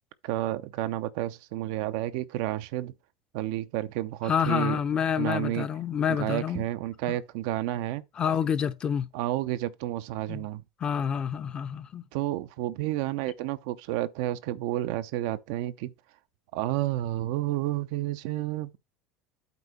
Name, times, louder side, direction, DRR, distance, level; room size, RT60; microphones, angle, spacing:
voice 1, 0.2-2.9 3.3-4.8 5.2-5.7 6.2-8.0 9.1-10.6 12.1-15.9 16.5-18.8, right 14 dB, 65° right, 0.6 m, -30 dB
voice 2, 4.2-6.6 7.1-7.2 8.2-9.1 10.3-10.5 10.8-12.0, left 7 dB, 35° left, 0.9 m, -28 dB
8.4 x 4.0 x 4.3 m
hypercardioid pair, 70°, 2 cm